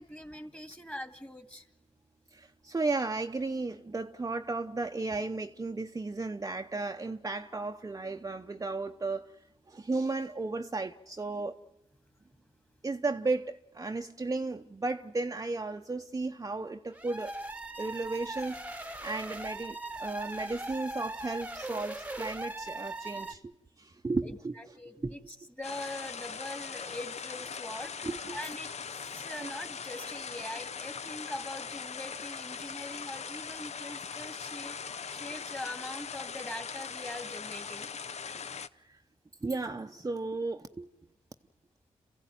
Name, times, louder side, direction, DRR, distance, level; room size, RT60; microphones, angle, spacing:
voice 1, 0.0-1.7 24.2-37.9, left 1 dB, 10° left, 2.3 m, -43 dB
voice 2, 2.3-9.4 9.7-11.6 12.8-17.4 17.8-23.4 23.8-24.5 25.0-25.1 28.0-28.4 29.4-29.5 38.8-39.0 39.4-40.9, right 3 dB, 25° right, 0.8 m, -34 dB
sound 1, 16.9-23.3, right 2 dB, 10° right, 1.2 m, -39 dB
sound 2, 25.6-38.7, left 6 dB, 60° left, 0.7 m, -40 dB
27.5 x 15.5 x 9.2 m
cardioid pair, 55°, 13 cm